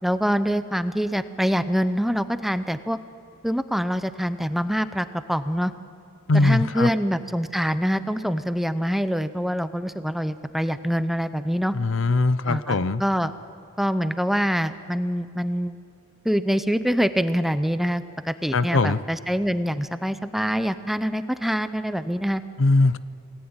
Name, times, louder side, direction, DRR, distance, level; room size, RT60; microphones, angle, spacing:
voice 1, 0.0-3.0 3.4-5.7 6.3-11.7 12.5-13.3 13.8-15.8 16.2-22.4, equal, ahead, 12 dB, 0.7 m, -25 dB
voice 2, 6.3-6.9 11.7-13.0 18.5-19.0 22.6-23.0, left 3 dB, 70° left, 15 dB, 0.7 m, -20 dB
28.0 x 19.0 x 8.9 m, 2.3 s
head